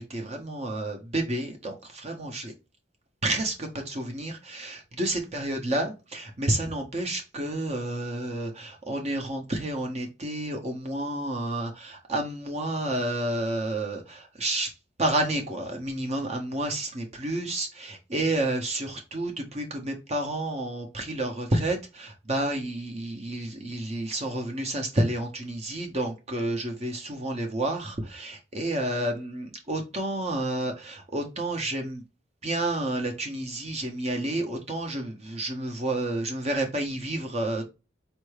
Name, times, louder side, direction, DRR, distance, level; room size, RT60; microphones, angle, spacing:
voice 1, 0.0-2.5 3.2-14.7 15.0-32.0 32.4-37.6, right 1 dB, 35° right, 0.7 m, -30 dB
4.5 x 2.6 x 3.1 m
head